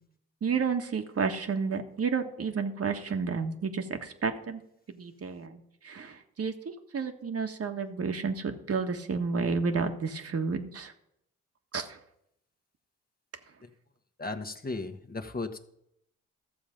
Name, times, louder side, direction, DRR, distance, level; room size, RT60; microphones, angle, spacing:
voice 1, 0.4-4.6 4.9-10.9 11.7-11.9, right 5 dB, 50° right, 6 dB, 1.5 m, -31 dB
voice 2, 14.2-15.6, left 3 dB, 30° left, 5 dB, 1.3 m, -36 dB
13.5 x 7.1 x 5.2 m, 0.77 s
supercardioid pair, 50°, 31 cm